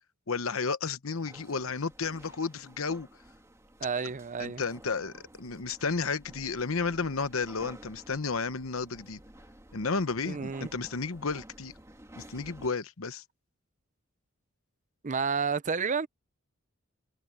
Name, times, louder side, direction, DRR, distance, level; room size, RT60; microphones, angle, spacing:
voice 1, 0.3-3.1 4.4-9.2 9.7-11.7 12.2-13.2, left 4 dB, 70° left, 1.0 m, -32 dB
sound 1, 1.1-12.7, right 1 dB, 15° right, 2.3 m, -53 dB
voice 2, 3.8-4.6 10.3-10.7 15.0-16.1, right 5 dB, 35° right, 0.6 m, -30 dB
head